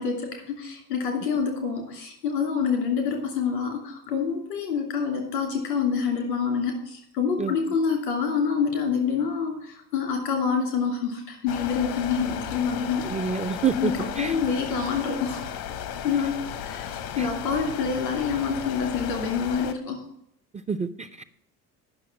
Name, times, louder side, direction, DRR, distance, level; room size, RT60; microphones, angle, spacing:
voice 1, 0.0-13.1 13.4-13.5 13.8-15.5 16.0-16.3 16.6-20.0, left 6 dB, 85° left, 2 dB, 2.7 m, -27 dB
Strong wind, 11.5-19.7, left 9 dB, 70° left, 1.0 m, -35 dB
voice 2, 13.0-14.4 17.2-17.3 20.7-21.2, right 6 dB, 15° right, 10 dB, 0.4 m, -28 dB
9.0 x 6.1 x 7.1 m, 0.74 s
hypercardioid pair, 55°, 47 cm